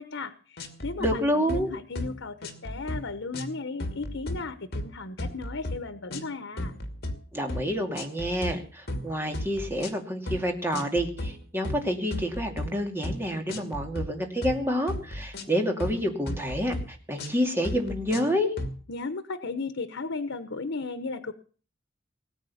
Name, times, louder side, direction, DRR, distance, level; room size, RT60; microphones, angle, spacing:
voice 1, 0.0-6.8 18.9-21.3, left 3 dB, 85° left, 12 dB, 1.0 m, -35 dB
sound 1, 0.6-1.2 1.5-1.7 1.9-2.1 2.4-3.0 3.3-3.5 3.8-4.4 4.7-4.9 5.2-5.8 6.1-6.3 6.6-7.1 7.5-7.7 7.9-8.5 8.9-9.1 9.3-9.9 10.3-10.4 10.7-11.4 11.6-12.7 13.0-13.2 13.5-14.1 14.4-14.6 14.9-16.0 16.3-16.9 17.2-17.4 17.6-18.3 18.6-18.7, left 1 dB, 55° left, 2.5 m, -34 dB
voice 2, 1.0-1.7 7.3-18.5, equal, 10° right, 3 dB, 2.6 m, -28 dB
19.0 x 8.8 x 7.1 m, 0.41 s
head